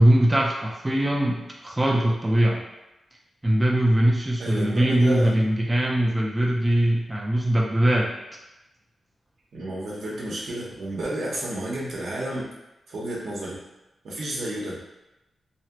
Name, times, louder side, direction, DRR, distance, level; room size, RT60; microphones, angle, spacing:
voice 1, 0.0-2.6 3.4-8.1, right 1 dB, 15° right, -3 dB, 0.4 m, -21 dB
voice 2, 4.4-5.4 9.5-12.5 12.9-13.6 14.0-14.8, right 1 dB, 75° right, -5 dB, 0.9 m, -31 dB
2.9 x 2.4 x 2.9 m, 0.96 s
cardioid pair, 85°, 0 cm